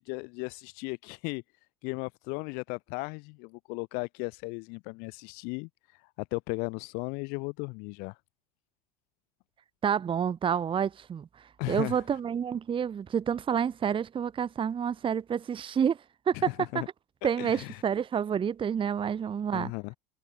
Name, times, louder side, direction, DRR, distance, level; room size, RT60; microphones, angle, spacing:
voice 1, 0.0-1.4 1.8-8.2 11.6-12.0 16.3-16.9 17.4-17.8 19.5-19.9, left 30 dB, 60° left, 1.3 m, -36 dB
voice 2, 9.8-16.0 16.3-16.8 17.2-19.7, right 8 dB, 30° right, 1.1 m, -29 dB
hypercardioid pair, 70°, 18 cm